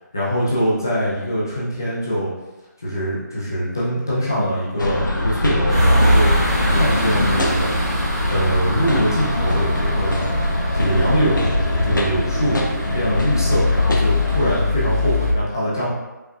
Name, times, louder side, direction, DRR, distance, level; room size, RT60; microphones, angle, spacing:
voice 1, 0.1-2.3 2.8-6.3 6.7-7.7 8.3-10.3 10.7-11.5 11.8-15.9, equal, 10° left, -9 dB, 0.4 m, -23 dB
sound 1, 4.8-14.6, left 1 dB, 80° left, 0.8 m, -23 dB
sound 2, 5.7-15.3, left 1 dB, 20° right, 0.9 m, -22 dB
5.0 x 2.3 x 2.7 m, 1.1 s
figure-of-eight pair, 175°, 10 cm